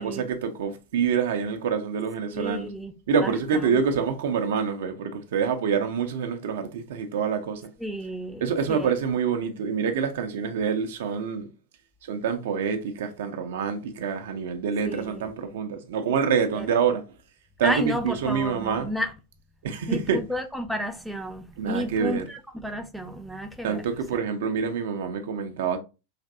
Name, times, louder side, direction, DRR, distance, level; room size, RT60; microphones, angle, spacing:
voice 1, 0.0-2.7 3.1-7.6 8.4-11.5 12.1-17.0 17.6-18.9 19.6-20.2 21.6-22.3 23.6-25.8, right 6 dB, 55° right, 0.5 m, -26 dB
voice 2, 2.3-2.9 3.2-3.8 7.8-8.9 14.8-15.2 16.6-16.7 17.6-19.1 19.9-23.9, equal, ahead, 0.3 m, -32 dB
3.3 x 2.6 x 2.4 m
figure-of-eight pair, 90°, 0 cm